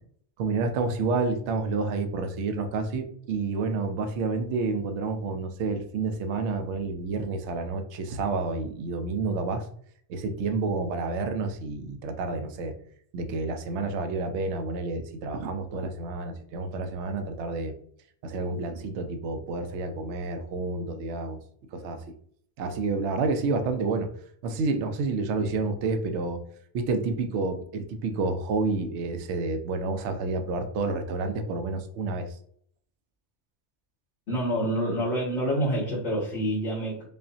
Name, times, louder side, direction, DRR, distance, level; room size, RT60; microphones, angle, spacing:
voice 1, 0.4-9.7 10.1-12.7 13.1-17.7 18.2-21.4 21.7-22.0 22.6-24.1 24.4-26.4 26.7-32.3, right 3 dB, 75° right, 6 dB, 0.8 m, -29 dB
voice 2, 34.3-37.1, equal, 65° left, -9 dB, 1.7 m, -27 dB
5.4 x 2.1 x 2.6 m, 0.62 s
omnidirectional pair, 1.2 m